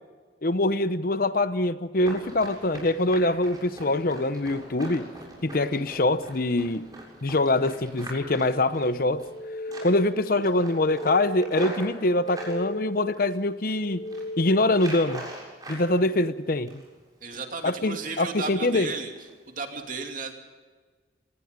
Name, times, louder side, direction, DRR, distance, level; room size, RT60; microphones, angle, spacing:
voice 1, 0.4-5.1 5.4-6.9 7.2-9.2 9.8-14.0 14.4-15.3 15.7-16.8 17.6-18.9, left 2 dB, 50° left, 13 dB, 0.8 m, -24 dB
Run, 2.0-9.4 9.7-10.1 10.4-12.6 13.1-13.7 14.0-14.3 14.7-15.8 16.2-17.0 17.3-17.5 17.9-18.2 18.6-18.7 19.2-19.3 19.7-19.8, right 1 dB, 20° right, 7.3 m, -41 dB
sound 1, 9.1-10.2 10.6-11.7 12.1-13.2 13.6-14.8, equal, 15° left, 4.0 m, -37 dB
voice 2, 17.2-19.1 19.5-20.3, right 4 dB, 45° right, 4 dB, 2.7 m, -34 dB
26.5 x 19.0 x 5.2 m, 1.4 s
head